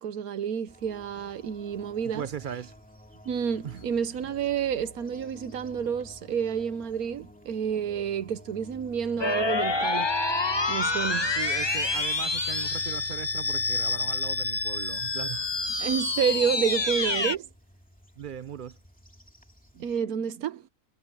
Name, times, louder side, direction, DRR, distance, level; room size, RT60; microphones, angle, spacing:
voice 1, 0.0-2.3 3.2-10.1 10.7-11.3 15.8-17.5 19.8-20.6, right 7 dB, 80° right, 1.4 m, -29 dB
sound 1, 0.7-20.0, equal, 5° left, 2.6 m, -51 dB
voice 2, 2.0-2.7 3.6-3.8 11.4-15.5 18.2-18.8, right 8 dB, 55° right, 0.5 m, -38 dB
sound 2, 3.7-17.3, left 2 dB, 90° left, 3.7 m, -54 dB
sound 3, 9.2-17.4, left 3 dB, 20° left, 0.9 m, -27 dB
omnidirectional pair, 1.5 m